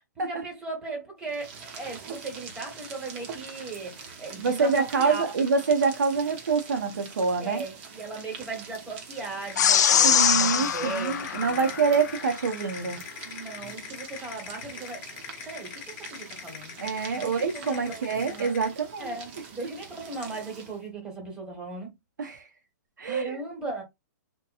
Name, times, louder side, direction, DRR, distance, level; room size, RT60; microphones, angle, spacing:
voice 1, 0.1-5.2 7.4-11.7 13.2-15.0 15.4-16.7 17.1-18.5 19.0-21.9 23.0-23.8, right 3 dB, 10° right, 1.2 m, -37 dB
sound 1, 1.2-20.9, right 5 dB, 35° right, 0.8 m, -45 dB
voice 2, 4.4-7.6 10.0-13.0 16.8-19.1 22.2-22.5 23.0-23.4, right 5 dB, 80° right, 0.7 m, -26 dB
sound 2, 9.4-18.8, left 8 dB, 40° left, 0.9 m, -42 dB
sound 3, 9.6-12.2, left 9 dB, 65° left, 0.4 m, -23 dB
2.9 x 2.2 x 2.4 m
hypercardioid pair, 140°, 10 cm